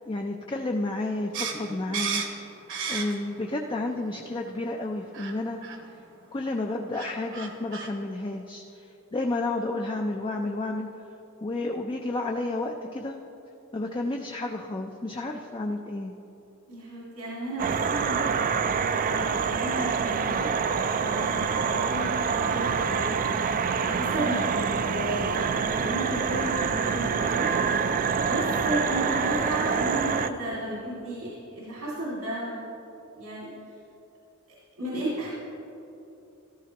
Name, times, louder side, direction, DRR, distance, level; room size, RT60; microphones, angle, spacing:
voice 1, 0.1-2.5 2.9-5.6 6.3-8.6 9.1-10.9 11.4-13.1 13.7-16.1, left 2 dB, 25° left, 2 dB, 0.4 m, -31 dB
sound 1, 1.3-3.4 3.8-4.5 5.1-5.4 5.6-5.8 6.6-6.7 6.9-7.9, right 6 dB, 60° right, 1.0 m, -33 dB
voice 2, 16.7-20.5 21.0-21.4 21.7-23.2 23.8-27.5 28.1-32.7 33.1-33.5 34.8-35.3, right 1 dB, 85° right, -7 dB, 2.3 m, -33 dB
sound 2, 17.6-30.3, right 6 dB, 40° right, 0.4 m, -26 dB
13.0 x 13.0 x 2.9 m, 2.9 s
head